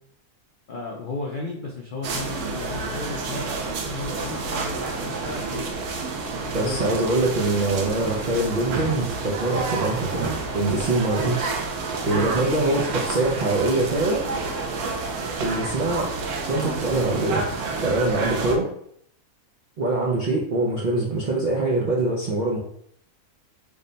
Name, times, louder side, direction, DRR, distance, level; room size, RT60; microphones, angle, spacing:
voice 1, 0.7-5.7 6.6-6.8 12.0-12.3, left 3 dB, 85° left, -1 dB, 0.4 m, -34 dB
sound 1, 2.0-18.6, right 3 dB, 90° right, 1.1 m, -29 dB
voice 2, 6.5-11.5 12.0-14.2 15.4-16.1 16.5-18.7 19.8-22.6, right 2 dB, 65° right, -4 dB, 0.4 m, -24 dB
3.6 x 2.1 x 3.9 m, 0.67 s
omnidirectional pair, 1.5 m